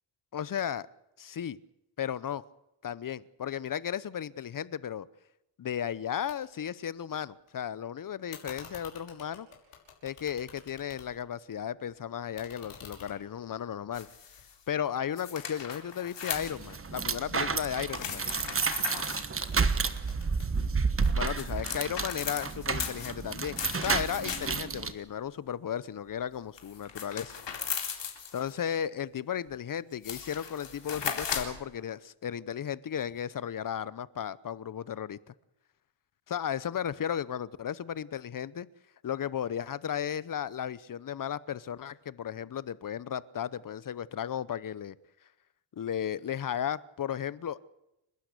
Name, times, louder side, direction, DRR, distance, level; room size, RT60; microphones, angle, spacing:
voice 1, 0.3-0.9 1.2-1.6 2.0-2.4 2.8-5.1 5.6-9.5 10.0-14.1 14.7-18.2 21.1-27.3 28.3-35.3 36.3-38.7 39.0-45.0 45.7-47.6, left 9 dB, 40° left, 0.8 m, -35 dB
sound 1, 6.3-6.4 6.7-7.5 8.3-11.4 11.7-15.0 15.4-17.6 19.2-20.5 21.4-21.7 22.4-22.9, left 7 dB, 75° left, 5.8 m, -51 dB
sound 2, 13.9-14.5 15.2-16.9 17.9-19.3 20.8-24.7 26.6-28.5 29.5-29.6 29.9-31.6, left 7 dB, 55° left, 3.8 m, -37 dB
sound 3, 16.3-24.9, right 4 dB, 25° right, 1.3 m, -31 dB
30.0 x 12.5 x 8.2 m
cardioid pair, 120°, 50 cm